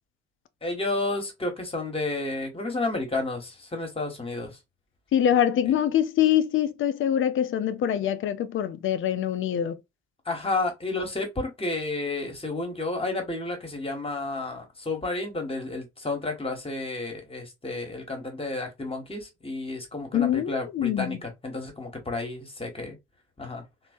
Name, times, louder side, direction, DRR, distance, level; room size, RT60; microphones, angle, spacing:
voice 1, 0.6-4.6 10.3-23.0 23.4-23.6, left 2 dB, 15° left, 1.2 m, -31 dB
voice 2, 5.1-9.8 20.1-21.2, left 10 dB, 35° left, 0.5 m, -24 dB
3.1 x 2.0 x 2.5 m
figure-of-eight pair, 45°, 34 cm